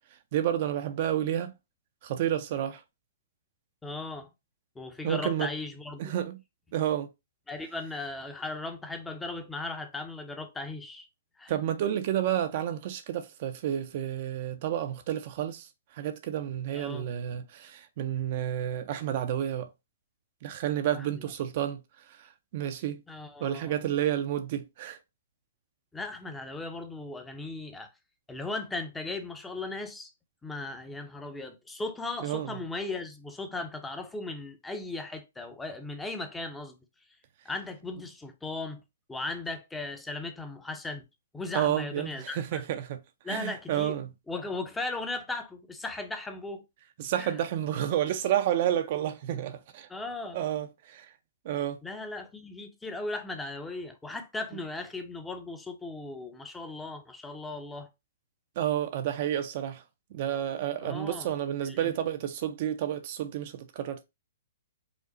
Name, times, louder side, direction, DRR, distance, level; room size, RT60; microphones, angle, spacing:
voice 1, 0.3-1.5 2.0-2.8 5.0-5.5 6.0-6.4 6.7-7.1 11.5-15.7 15.9-19.7 20.4-21.8 22.2-22.3 22.5-23.0 23.4-25.0 32.2-32.5 41.5-43.0 43.3-44.1 47.0-49.9 50.3-51.1 51.4-51.8 58.6-59.8 60.1-64.0, right 11 dB, 45° right, 0.5 m, -30 dB
voice 2, 3.8-4.3 4.8-6.0 7.5-11.1 11.4-11.5 16.7-17.1 20.9-21.2 23.1-23.7 25.9-27.9 28.3-30.1 30.4-36.7 37.4-38.8 39.1-41.1 41.3-42.6 43.2-43.9 44.3-46.6 47.2-47.4 49.9-50.4 51.8-57.9 60.8-61.3 61.7-61.9, left 2 dB, 10° left, 0.6 m, -37 dB
5.0 x 2.0 x 3.8 m
hypercardioid pair, 145°, 0 cm